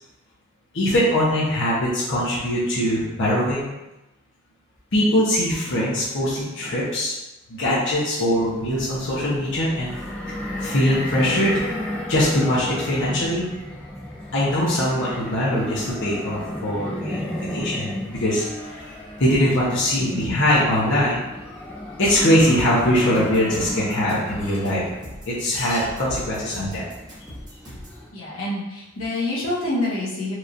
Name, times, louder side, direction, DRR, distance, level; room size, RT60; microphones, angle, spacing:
voice 1, 0.7-3.7 4.9-7.1 7.5-10.0 10.6-11.6 12.1-13.5 14.3-18.8 19.2-21.2 22.0-24.8 25.3-26.8, equal, 60° left, -8 dB, 1.1 m, -22 dB
sound 1, 8.3-28.1, left 1 dB, 5° left, 0.6 m, -34 dB
sound 2, 22.0-28.0, equal, 20° right, 1.3 m, -41 dB
voice 2, 28.1-30.3, left 2 dB, 90° left, -8 dB, 1.3 m, -27 dB
4.6 x 3.1 x 2.6 m, 1.0 s
head